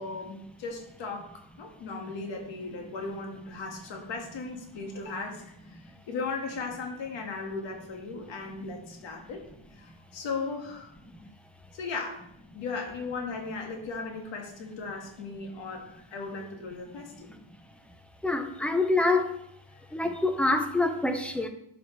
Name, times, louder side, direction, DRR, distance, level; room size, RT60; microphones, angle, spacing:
voice 1, 0.0-9.4 9.7-10.9 11.7-12.2 12.5-17.3 19.7-19.8, left 4 dB, 70° left, 3 dB, 1.7 m, -37 dB
voice 2, 18.2-19.2 19.9-21.5, left 2 dB, 5° left, 7 dB, 0.5 m, -25 dB
11.5 x 5.0 x 3.1 m, 0.74 s
cardioid pair, 145°, 46 cm